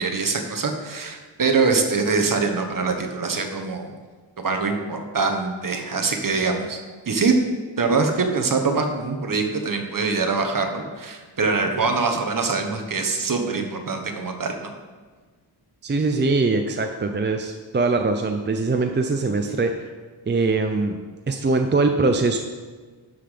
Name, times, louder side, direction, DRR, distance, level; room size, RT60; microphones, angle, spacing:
voice 1, 0.0-4.0 4.4-6.8 7.1-7.3 7.8-14.7, right 4 dB, 45° right, 4 dB, 1.2 m, -24 dB
voice 2, 15.8-19.8 20.3-21.0 21.3-22.4, right 3 dB, 25° right, 5 dB, 0.5 m, -22 dB
12.5 x 5.7 x 5.1 m, 1.4 s
wide cardioid pair, 140°, 46 cm